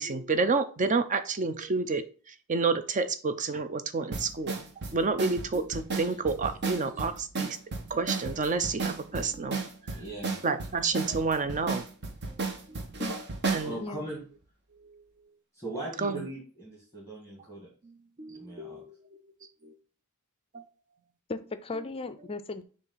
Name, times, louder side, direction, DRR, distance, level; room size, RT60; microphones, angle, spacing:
voice 1, 0.0-2.0 2.5-4.6 4.9-7.6 7.9-9.6 10.4-11.8 12.7-12.8 13.5-13.7 16.0-16.2 18.2-18.9 19.6-19.7 20.5-20.6, right 4 dB, 35° right, 10 dB, 0.5 m, -29 dB
sound 1, 4.1-13.7, right 4 dB, 50° right, 1.0 m, -33 dB
voice 2, 9.9-10.4 13.6-14.2 15.5-17.7 18.3-18.9, right 1 dB, 10° right, -5 dB, 2.1 m, -40 dB
voice 3, 21.3-22.6, left 3 dB, 25° left, 11 dB, 0.5 m, -36 dB
6.8 x 2.6 x 5.7 m, 0.40 s
head